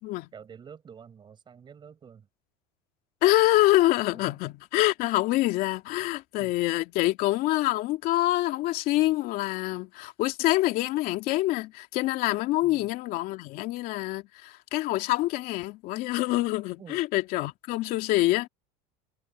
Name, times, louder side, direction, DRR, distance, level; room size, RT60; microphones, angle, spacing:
voice 1, 0.3-2.3 4.1-4.4 6.4-6.5 12.6-12.9 16.8-17.0, right 7 dB, 25° right, 7.9 m, -48 dB
voice 2, 3.2-18.5, left 17 dB, 55° left, 2.7 m, -26 dB
supercardioid pair, 130°, 17 cm